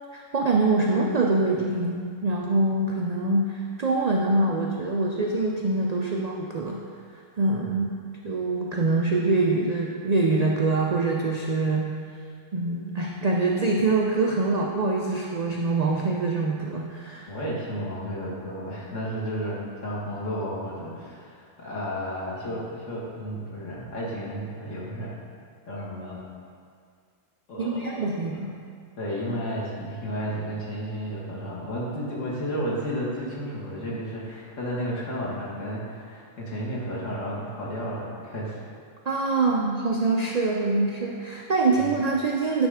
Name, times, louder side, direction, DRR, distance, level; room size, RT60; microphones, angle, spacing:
voice 1, 0.1-6.8 7.4-8.0 8.2-11.9 12.5-17.3 27.6-28.5 39.1-42.7, right 3 dB, 70° right, -1 dB, 0.3 m, -24 dB
voice 2, 17.3-25.1 25.7-26.2 27.5-28.4 29.0-38.6 41.8-41.9, equal, 70° left, -6 dB, 1.8 m, -32 dB
9.5 x 3.4 x 4.9 m, 2.2 s
omnidirectional pair, 1.4 m